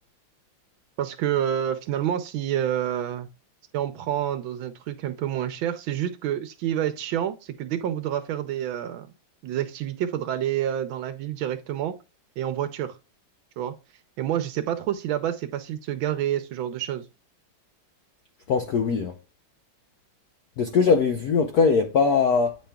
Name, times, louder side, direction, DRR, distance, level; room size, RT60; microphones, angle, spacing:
voice 1, 1.0-3.3 3.7-9.1 9.4-12.0 12.4-13.0 13.6-13.7 14.2-17.1, right 10 dB, 75° right, 1.3 m, -28 dB
voice 2, 18.5-19.1 20.6-22.6, left 5 dB, 65° left, 1.0 m, -21 dB
8.8 x 5.2 x 2.2 m
omnidirectional pair, 2.3 m